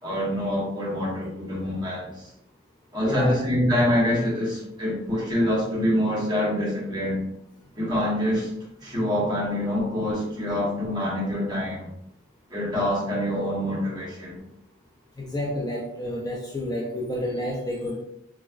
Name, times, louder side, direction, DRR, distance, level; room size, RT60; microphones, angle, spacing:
voice 1, 0.0-2.1 2.9-7.2 7.7-8.5 8.8-11.9 12.5-14.4, left 1 dB, 20° right, -5 dB, 1.1 m, -25 dB
voice 2, 3.0-3.4 15.2-18.0, left 1 dB, 20° left, -3 dB, 0.4 m, -30 dB
3.6 x 3.0 x 2.3 m, 0.79 s
head